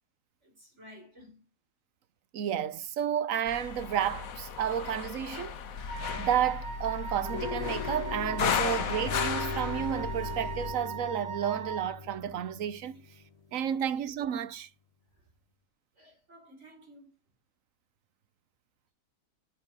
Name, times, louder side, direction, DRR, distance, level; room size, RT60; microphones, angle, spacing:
voice 1, 0.4-1.4 7.0-7.1 13.7-13.8 16.0-17.0, equal, 55° right, 4.8 m, -54 dB
voice 2, 2.3-5.6 6.2-13.1 13.5-14.7, right 9 dB, 75° right, 1.2 m, -31 dB
sound 1, 3.5-10.7, left 7 dB, 90° left, 1.4 m, -35 dB
Wind instrument woodwind instrument, 5.9-12.0, right 7 dB, 5° right, 4.3 m, -40 dB
sound 2, 7.2-13.5, left 5 dB, 40° left, 0.6 m, -40 dB
8.7 x 7.4 x 6.2 m
omnidirectional pair, 1.4 m